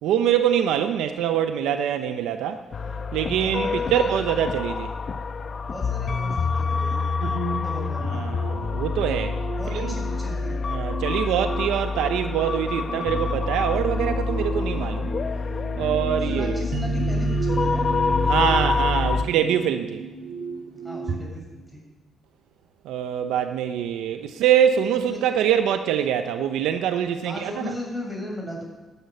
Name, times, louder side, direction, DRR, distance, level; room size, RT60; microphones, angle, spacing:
voice 1, 0.0-2.6 3.1-4.9 8.1-9.4 9.7-9.9 10.7-15.1 15.8-16.6 18.3-20.0 22.8-27.7, right 9 dB, 90° right, 8 dB, 0.8 m, -24 dB
sound 1, 2.7-19.2, left 4 dB, 45° left, 1.0 m, -27 dB
voice 2, 3.6-4.1 5.7-7.0 7.6-8.2 9.5-10.6 12.7-13.0 16.2-17.9 20.8-21.8 25.1-25.2 27.2-28.6, left 1 dB, 5° right, -1 dB, 7.0 m, -36 dB
sound 2, 7.2-21.2, right 3 dB, 55° right, 2.2 m, -33 dB
12.5 x 10.0 x 9.4 m, 1.2 s
cardioid pair, 90°, 0 cm